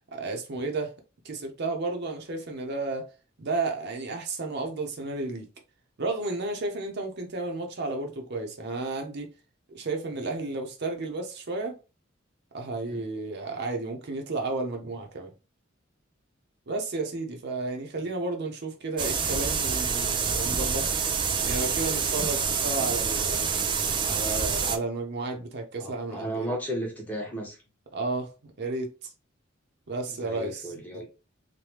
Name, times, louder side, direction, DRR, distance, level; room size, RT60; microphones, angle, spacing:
voice 1, 0.1-0.9 1.2-3.1 3.4-5.5 6.0-9.3 9.7-11.8 12.5-15.3 16.7-20.9 21.4-23.5 24.1-26.5 27.9-28.3 28.6-28.9 29.9-30.7, right 3 dB, 55° right, 0.6 m, -32 dB
sound 1, 19.0-24.8, right 6 dB, 25° right, 0.3 m, -27 dB
voice 2, 25.8-27.6 30.2-31.1, equal, 10° left, 0.8 m, -34 dB
3.2 x 2.1 x 2.9 m
head